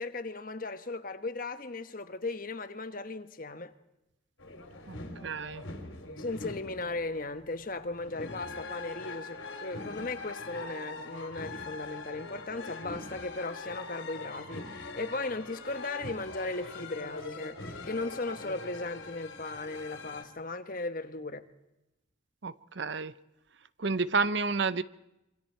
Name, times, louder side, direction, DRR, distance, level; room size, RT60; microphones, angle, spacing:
voice 1, 0.0-3.7 6.2-21.5, left 3 dB, 45° left, 1.2 m, -37 dB
sound 1, 4.4-20.2, left 2 dB, 75° left, 3.3 m, -42 dB
voice 2, 5.2-5.6 22.4-23.1 23.8-24.8, right 4 dB, 60° right, 0.8 m, -30 dB
27.0 x 24.5 x 4.6 m
head